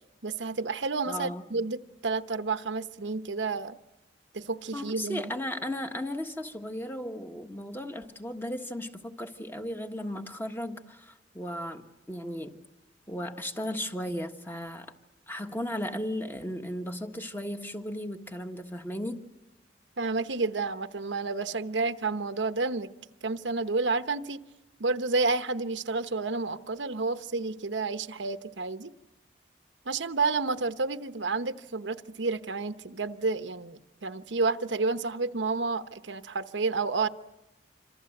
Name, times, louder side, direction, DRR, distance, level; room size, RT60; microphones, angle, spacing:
voice 1, 0.2-3.8 4.3-5.3 20.0-22.9 23.2-24.4 24.8-28.9 29.8-37.1, right 3 dB, 85° right, 10 dB, 1.0 m, -30 dB
voice 2, 1.1-1.4 4.7-12.6 13.1-14.9 15.3-19.2, left 1 dB, 10° left, 6 dB, 1.5 m, -35 dB
27.0 x 26.0 x 7.9 m, 0.99 s
head